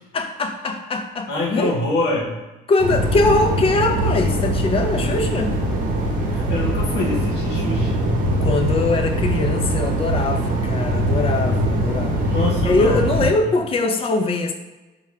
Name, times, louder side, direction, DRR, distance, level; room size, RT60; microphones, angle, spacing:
voice 1, 0.1-1.8 2.7-5.5 8.4-12.3 12.6-14.5, left 3 dB, 35° left, 5 dB, 0.4 m, -22 dB
voice 2, 1.3-2.4 5.0-5.2 6.3-8.0 12.3-13.1, left 2 dB, 80° left, -4 dB, 0.9 m, -25 dB
sound 1, 2.8-13.3, right 1 dB, 50° right, 0.8 m, -22 dB
4.6 x 2.3 x 3.2 m, 1.1 s
cardioid pair, 110°, 17 cm